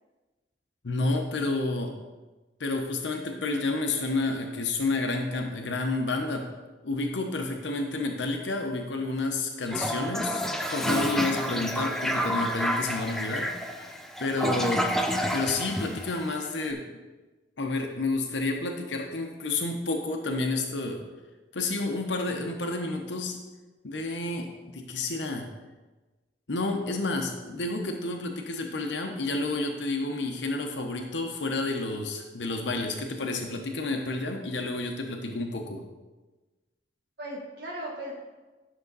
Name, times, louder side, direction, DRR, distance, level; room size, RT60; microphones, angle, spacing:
voice 1, 0.8-1.9 2.6-6.5 6.8-10.4 10.7-13.9 14.2-14.8 15.3-16.8 17.6-21.0 21.5-23.4 23.8-25.5 26.5-35.8, left 2 dB, 85° left, 3 dB, 0.9 m, -30 dB
Toilet flush, 9.7-16.6, equal, ahead, 0.6 m, -29 dB
voice 2, 10.8-11.2 37.2-38.2, right 1 dB, 65° right, -4 dB, 1.4 m, -38 dB
11.0 x 6.4 x 4.0 m, 1.2 s
head